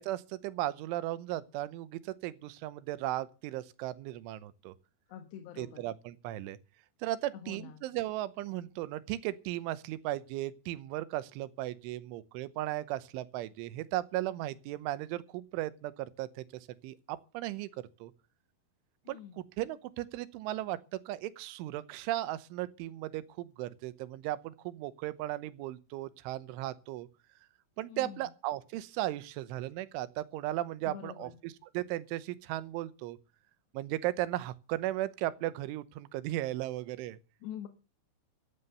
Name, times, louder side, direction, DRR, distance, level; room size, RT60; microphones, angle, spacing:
voice 1, 0.0-4.7 5.6-6.6 7.0-16.4 16.8-17.7 18.0-18.1 19.1-20.8 21.1-27.1 27.8-33.2 33.8-37.2, right 15 dB, 85° right, 3.3 m, -36 dB
voice 2, 5.1-5.8 7.3-7.8 19.1-19.4 27.9-28.3 30.9-31.3 37.4-37.7, left 10 dB, 70° left, 3.2 m, -45 dB
15.5 x 9.6 x 6.8 m
omnidirectional pair, 5.5 m